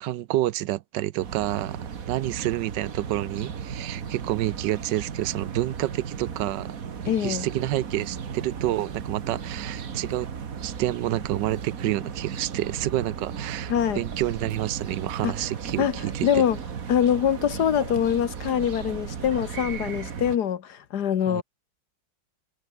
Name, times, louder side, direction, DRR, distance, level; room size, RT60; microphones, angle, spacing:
voice 1, 0.0-6.7 7.2-10.3 10.6-16.3 21.3-21.4, right 15 dB, 80° right, 1.3 m, -29 dB
sound 1, 1.2-20.4, right 7 dB, 50° right, 1.8 m, -35 dB
voice 2, 7.1-7.5 13.7-14.1 15.2-15.3 15.8-15.9 16.2-16.6 16.9-21.4, left 9 dB, 65° left, 1.6 m, -24 dB
omnidirectional pair, 1.9 m